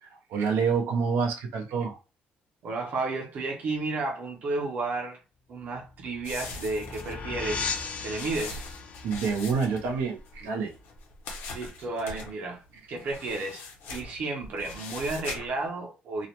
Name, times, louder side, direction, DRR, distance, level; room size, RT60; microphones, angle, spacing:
voice 1, 0.0-2.0 9.0-10.7, right 5 dB, 90° right, 0.7 m, -27 dB
voice 2, 2.6-5.2 5.5-7.7 8.0-8.6 11.5-12.6 12.9-13.6 13.9-16.3, right 3 dB, 50° right, 0.7 m, -32 dB
sound 1, 5.7-11.0, left 4 dB, 35° left, 0.4 m, -38 dB
sound 2, 6.2-10.4 10.7-12.3 13.0-15.6, left 3 dB, 75° left, 0.9 m, -41 dB
2.3 x 2.1 x 2.9 m
cardioid pair, 170°, 4 cm